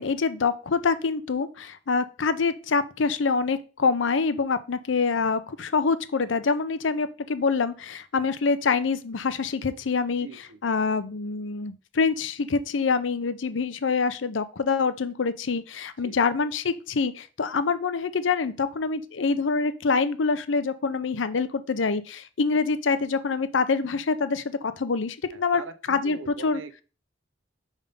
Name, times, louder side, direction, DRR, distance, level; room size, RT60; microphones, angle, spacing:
voice 1, 0.0-10.3 10.6-25.6 25.9-26.6, left 4 dB, 70° left, 13 dB, 0.6 m, -25 dB
voice 2, 10.2-10.6 16.0-16.2 25.3-26.8, right 4 dB, 80° right, 12 dB, 0.7 m, -41 dB
5.4 x 3.6 x 5.3 m, 0.36 s
head